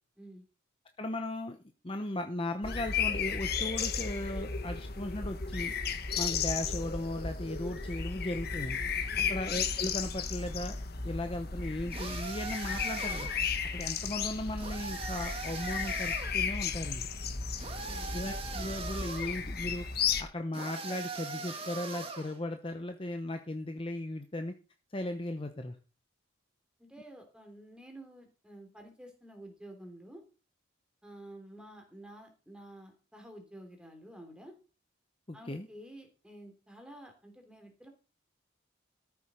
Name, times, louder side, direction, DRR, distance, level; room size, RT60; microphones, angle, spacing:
voice 1, 1.0-1.6 1.8-5.7 6.2-8.8 9.3-10.8 11.0-17.1 18.1-19.8 20.2-24.5 24.9-25.8 35.3-35.7, left 1 dB, 25° left, 6 dB, 0.8 m, -37 dB
sound 1, 2.6-20.2, left 6 dB, 50° left, 1.3 m, -34 dB
voice 2, 9.1-9.4 17.7-18.2 26.8-30.2 31.0-34.5 35.3-37.9, right 1 dB, 5° right, 3 dB, 3.0 m, -50 dB
sound 2, 11.9-13.5 14.6-16.4 17.6-19.4 20.5-22.4, right 3 dB, 30° right, 2.0 m, -40 dB
13.5 x 7.2 x 5.0 m, 0.35 s
head